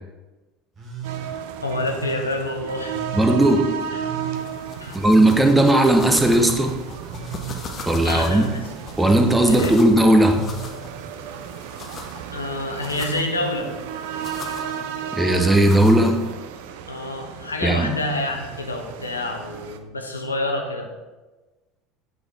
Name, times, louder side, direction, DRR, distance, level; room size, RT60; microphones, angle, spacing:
Telephone, 0.7-1.3 1.8-2.3 2.8-3.4 3.9-4.4 4.9-5.5 6.0-6.5 7.0-7.6 8.1-8.6 9.1-9.7 10.2-11.7 12.0-12.8 13.3-13.8 14.4-14.9 15.4-15.9 17.1-17.2, right 10 dB, 30° right, 1.4 m, -36 dB
sound 1, 1.0-19.8, right 8 dB, 60° right, 0.4 m, -34 dB
voice 1, 1.6-3.1 4.8-5.0 8.0-8.6 9.5-9.7 12.3-13.7 16.9-20.9, left 1 dB, 85° left, 3 dB, 0.7 m, -27 dB
voice 2, 3.1-3.7 4.9-6.7 7.9-8.5 9.0-10.4 15.1-16.2 17.6-17.9, right 1 dB, 10° right, 4 dB, 0.7 m, -16 dB
sound 2, 4.4-16.3, left 4 dB, 35° left, 0.7 m, -39 dB
7.9 x 4.0 x 3.2 m, 1.2 s
figure-of-eight pair, 70°, 0 cm